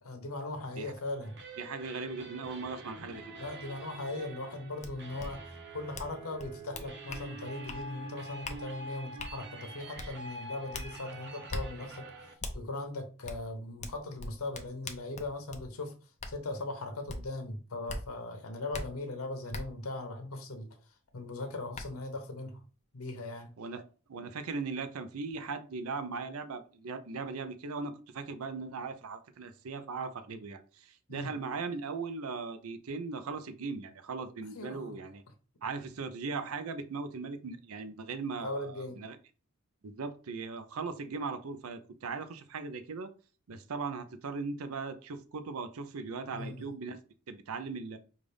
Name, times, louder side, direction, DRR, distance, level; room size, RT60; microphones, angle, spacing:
voice 1, 0.0-1.4 3.4-5.5 5.7-12.1 12.5-15.9 16.3-20.8 21.1-22.6 22.9-23.5 31.1-31.3 34.5-35.0 38.4-39.0 46.3-46.7, left 2 dB, 75° left, 0.8 m, -39 dB
sound 1, 1.2-12.3, right 2 dB, 55° right, 0.9 m, -46 dB
voice 2, 1.6-3.2 23.6-23.8 24.1-35.2 35.6-39.2 39.8-43.1 43.5-47.0 47.3-48.0, right 4 dB, 80° right, 0.5 m, -38 dB
sound 2, 4.8-4.9 5.2-5.3 5.9-6.1 6.4-7.2 7.7-7.8 8.4-8.6 9.2-9.3 10.0-10.1 10.7-10.9 11.5-11.6 12.4-12.5 13.3-13.4 13.8-15.6 16.2-16.3 17.1-17.2 17.9-18.0 18.7-18.8 19.5-19.6 21.1-21.2 21.7-21.8, left 2 dB, 35° left, 0.6 m, -39 dB
5.4 x 2.4 x 3.3 m
head